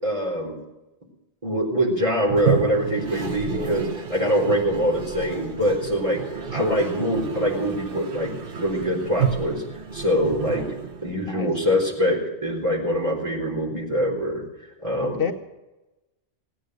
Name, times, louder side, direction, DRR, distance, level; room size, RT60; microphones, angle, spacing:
voice 1, 0.0-0.5 1.4-14.4 14.8-15.3, equal, 30° right, -1 dB, 4.1 m, -24 dB
Toilet flush, 2.2-11.4, right 7 dB, 60° right, 1.3 m, -31 dB
voice 2, 15.0-15.3, left 6 dB, 60° left, 6 dB, 1.1 m, -27 dB
17.5 x 9.4 x 7.9 m, 1.0 s
omnidirectional pair, 1.1 m